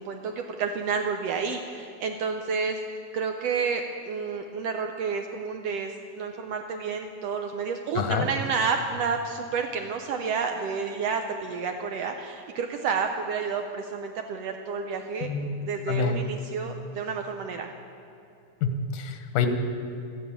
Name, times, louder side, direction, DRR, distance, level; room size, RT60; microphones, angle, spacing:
voice 1, 0.0-2.8 3.1-15.3 15.6-17.7, right 5 dB, 75° right, 5 dB, 1.5 m, -30 dB
voice 2, 8.0-8.3 15.2-15.6 15.9-16.2 18.6-19.5, left 6 dB, 90° left, 7 dB, 2.6 m, -27 dB
13.0 x 9.4 x 8.7 m, 2.7 s
omnidirectional pair, 3.6 m